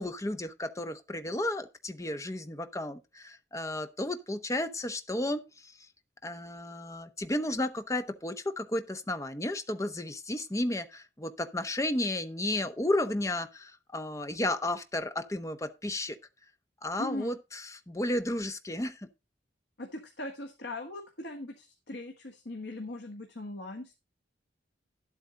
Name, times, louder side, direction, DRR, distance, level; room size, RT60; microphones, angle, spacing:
voice 1, 0.0-5.7 6.2-16.2 16.8-19.1, left 1 dB, 15° left, 0.9 m, -33 dB
voice 2, 17.0-17.4 19.8-24.0, left 2 dB, 70° left, 1.5 m, -40 dB
11.0 x 8.3 x 3.8 m
head